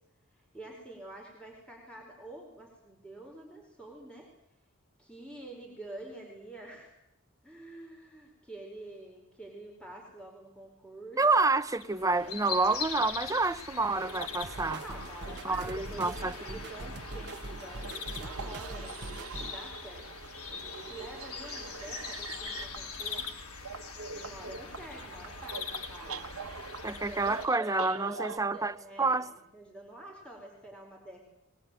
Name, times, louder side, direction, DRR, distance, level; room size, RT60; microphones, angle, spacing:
voice 1, 0.5-4.3 5.0-6.9 7.4-11.5 12.0-12.4 14.8-16.1 16.5-20.1 20.5-23.2 24.1-25.6 25.9-26.4 26.8-31.3, right 1 dB, 5° left, 4.6 m, -47 dB
voice 2, 11.2-14.8 15.4-16.3 26.8-29.3, right 3 dB, 15° right, 0.8 m, -28 dB
sound 1, 11.5-27.5, left 5 dB, 85° left, 2.4 m, -42 dB
sound 2, 14.0-28.4, right 5 dB, 80° right, 1.2 m, -44 dB
sound 3, 14.4-19.5, right 2 dB, 50° right, 0.9 m, -43 dB
21.0 x 20.5 x 9.1 m
head